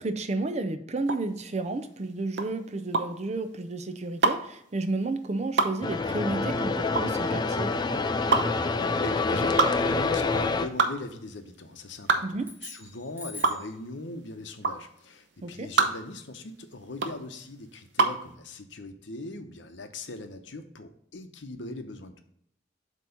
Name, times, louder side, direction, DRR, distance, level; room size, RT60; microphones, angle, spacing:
voice 1, 0.0-7.8 12.2-12.5 15.4-15.7, right 2 dB, 35° right, 9 dB, 0.5 m, -32 dB
sound 1, 1.0-18.3, right 4 dB, 70° right, 0.7 m, -28 dB
sound 2, 5.8-10.7, left 3 dB, 20° left, 0.3 m, -27 dB
voice 2, 9.0-22.2, left 2 dB, 75° left, 7 dB, 0.8 m, -40 dB
sound 3, 12.4-13.8, left 1 dB, 10° right, 1.2 m, -44 dB
7.8 x 3.0 x 5.7 m, 0.69 s
head